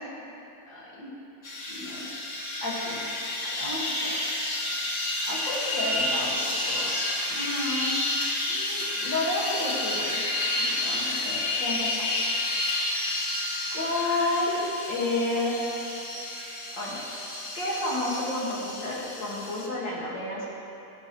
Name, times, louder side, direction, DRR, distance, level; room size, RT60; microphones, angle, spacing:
voice 1, 0.7-1.1 1.7-2.1 2.6-3.0 3.4-4.1 5.3-7.0 7.3-8.0 8.5-10.2 10.5-12.1 13.7-14.6 14.9-16.0 16.8-17.0 17.5-20.5, left 2 dB, 85° left, -6 dB, 2.6 m, -31 dB
sound 1, 1.4-19.7, left 2 dB, 55° left, 1.8 m, -30 dB
17.0 x 9.8 x 3.1 m, 2.9 s
omnidirectional pair, 1.9 m